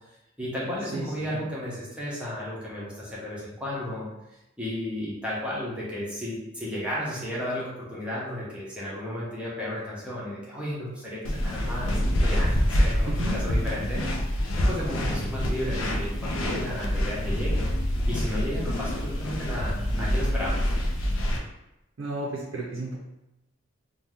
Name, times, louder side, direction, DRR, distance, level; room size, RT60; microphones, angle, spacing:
voice 1, 0.4-4.1 4.6-14.0 14.5-17.7 18.1-20.7, left 1 dB, 5° right, -7 dB, 0.6 m, -33 dB
voice 2, 0.9-1.4 13.1-13.4 15.6-15.9 19.5-19.6 22.0-23.0, right 2 dB, 60° right, -4 dB, 0.5 m, -33 dB
sound 1, 11.2-21.4, equal, 65° left, 0.5 m, -26 dB
2.7 x 2.1 x 3.4 m, 0.91 s
head